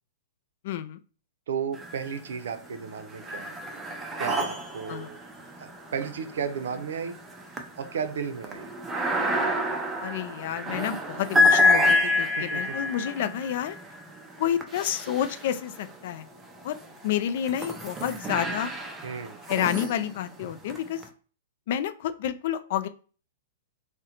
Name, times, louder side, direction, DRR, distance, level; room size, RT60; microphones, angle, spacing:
voice 1, 0.6-1.0 4.9-5.1 10.0-13.8 14.4-16.3 16.6-16.7 17.0-18.7 19.5-21.0 21.7-22.9, left 10 dB, 55° left, 12 dB, 0.3 m, -29 dB
voice 2, 1.5-3.7 4.2-5.2 5.6-7.1 7.8-8.7 12.4-12.7 19.0-19.4, right 7 dB, 80° right, 9 dB, 0.5 m, -34 dB
sound 1, 1.7-2.4 2.8-15.9 16.6-21.0, left 2 dB, 10° right, 0.5 m, -28 dB
3.6 x 2.1 x 2.9 m, 0.39 s
hypercardioid pair, 145°, 0 cm